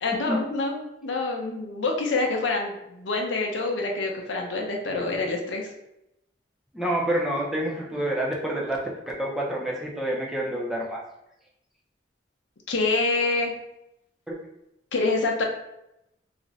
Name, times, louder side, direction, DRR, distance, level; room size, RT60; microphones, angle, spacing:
voice 1, 0.0-5.7 12.7-13.5 14.9-15.4, left 3 dB, 85° left, 1 dB, 0.6 m, -26 dB
voice 2, 6.7-8.9 9.2-11.0 14.3-14.4, right 1 dB, ahead, -3 dB, 0.4 m, -28 dB
2.4 x 2.0 x 3.8 m, 0.85 s
head